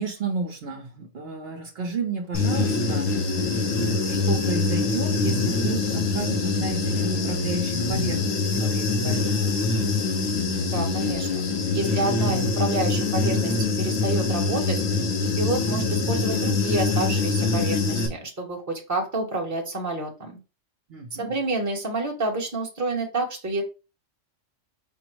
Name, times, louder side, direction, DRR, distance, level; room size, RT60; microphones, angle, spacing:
voice 1, 0.0-3.7 4.0-9.5 20.9-21.3, right 4 dB, 55° right, 2 dB, 0.9 m, -32 dB
Human voice / Buzz, 2.3-18.1, left 3 dB, 90° left, 1.3 m, -24 dB
voice 2, 10.7-11.4 11.7-14.8 15.4-20.4 21.2-23.6, right 2 dB, 15° right, 0 dB, 0.9 m, -29 dB
5.3 x 2.0 x 4.5 m, 0.32 s
omnidirectional pair, 1.3 m